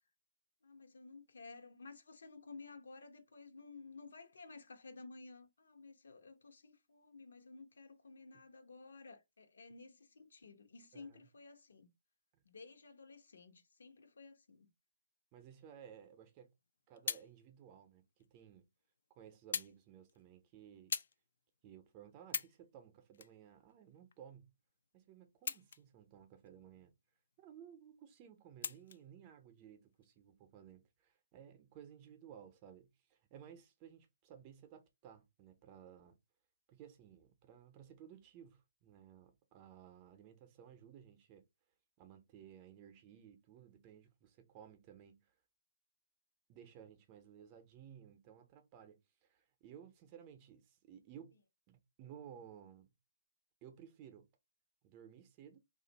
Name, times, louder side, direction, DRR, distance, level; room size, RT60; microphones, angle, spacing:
voice 1, 0.6-11.9 12.4-14.7, left 4 dB, 80° left, 0.9 m, -54 dB
voice 2, 10.9-11.3 12.3-12.4 15.3-16.5 16.9-18.7 19.1-20.9 21.6-24.5 24.9-26.9 27.4-36.2 36.7-41.4 42.0-45.3 46.5-51.3 51.7-52.9 53.6-54.3 54.8-55.6, right 9 dB, 30° right, 0.6 m, -57 dB
sound 1, 16.5-17.3 18.2-18.3 19.5-19.8 20.1-20.3 20.9-21.2 21.7-21.8 22.2-22.6 23.1-24.1 25.3-26.0 26.5-26.6 28.6-29.0 29.9-30.0, left 6 dB, 65° left, 0.3 m, -41 dB
2.5 x 2.4 x 4.0 m
hypercardioid pair, 155°, 0 cm